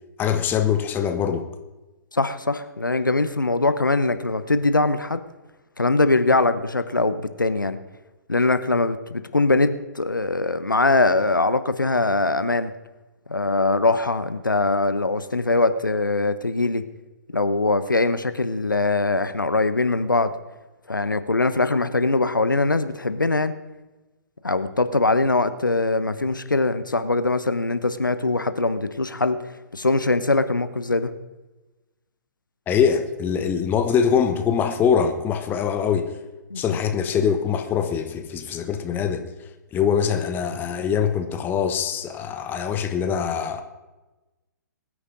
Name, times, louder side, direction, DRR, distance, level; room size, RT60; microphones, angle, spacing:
voice 1, 0.2-1.5 32.7-36.1 36.5-39.3 39.7-43.6, left 7 dB, 20° left, 7 dB, 1.1 m, -23 dB
voice 2, 2.1-5.2 5.8-7.8 8.3-12.7 13.3-16.8 17.3-20.3 20.9-23.5 24.4-29.4 29.7-31.1 36.5-36.8, left 2 dB, 90° left, 12 dB, 0.9 m, -22 dB
21.5 x 9.8 x 3.9 m, 1.1 s
figure-of-eight pair, 120°, 10 cm